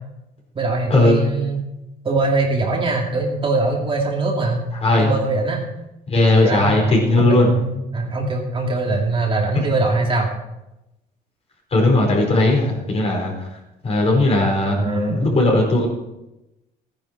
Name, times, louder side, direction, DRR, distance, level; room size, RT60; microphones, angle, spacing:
voice 1, 0.5-1.7 2.0-4.6 4.9-5.6 6.4-10.3 14.8-15.4, right 3 dB, 30° right, 0 dB, 2.6 m, -22 dB
voice 2, 4.8-5.1 6.1-7.5 9.5-9.6 11.7-13.5 13.8-15.9, left 2 dB, 35° left, -1 dB, 4.7 m, -17 dB
14.0 x 10.0 x 4.7 m, 0.93 s
cardioid pair, 110°, 17 cm